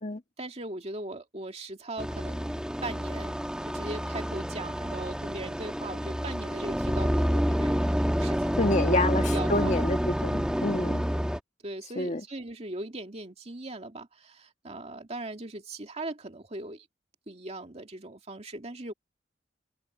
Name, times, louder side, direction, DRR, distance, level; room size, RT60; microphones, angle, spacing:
voice 1, 0.4-3.3 3.7-7.8 8.2-8.7 8.9-9.1 9.3-9.8 10.8-10.9 11.6-16.8 17.3-18.9, right 2 dB, 35° right, 2.4 m, -39 dB
sound 1, 2.0-11.4, equal, 5° right, 1.5 m, -28 dB
voice 2, 8.6-11.0 11.9-12.2, left 2 dB, 40° left, 1.7 m, -28 dB
head